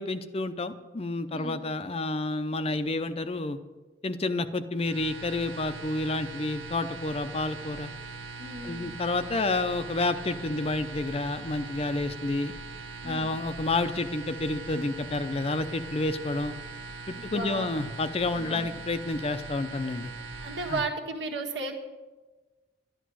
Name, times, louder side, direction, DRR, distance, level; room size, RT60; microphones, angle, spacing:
voice 1, 0.0-3.6 4.0-7.9 8.6-12.5 13.0-16.5 17.1-20.1 20.7-20.8, left 2 dB, 35° left, 10 dB, 0.6 m, -30 dB
sound 1, 4.8-20.8, right 3 dB, 90° right, 1.0 m, -41 dB
voice 2, 8.4-8.9 13.0-13.3 17.1-17.7 18.4-18.7 20.4-21.7, right 3 dB, 70° right, 2 dB, 1.7 m, -35 dB
11.5 x 11.5 x 6.3 m, 1.2 s
head